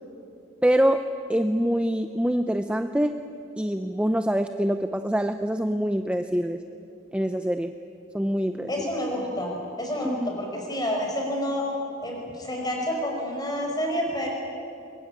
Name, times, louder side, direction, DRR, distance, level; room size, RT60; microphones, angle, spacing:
voice 1, 0.6-1.0 1.3-6.6 7.1-7.7 8.1-8.9 10.0-10.3, equal, 5° right, 8 dB, 0.5 m, -25 dB
voice 2, 8.7-9.5 9.8-11.7 12.0-14.3, equal, 20° left, 0 dB, 5.4 m, -29 dB
23.0 x 22.0 x 9.9 m, 2.7 s
head